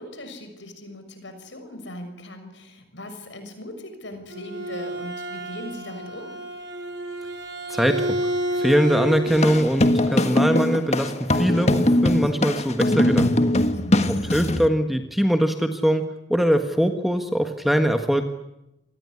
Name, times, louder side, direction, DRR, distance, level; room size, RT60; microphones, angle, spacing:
voice 1, 0.0-6.4 13.5-14.1, left 1 dB, 75° left, 8 dB, 6.4 m, -39 dB
Bowed string instrument, 4.1-9.6, equal, 70° right, 5.0 m, -30 dB
voice 2, 7.7-8.2 8.6-13.3 14.3-16.0 16.3-18.2, equal, ahead, 6 dB, 1.5 m, -22 dB
sound 1, 9.3-14.7, left 1 dB, 35° left, 1.5 m, -21 dB
27.5 x 19.5 x 9.8 m, 0.89 s
head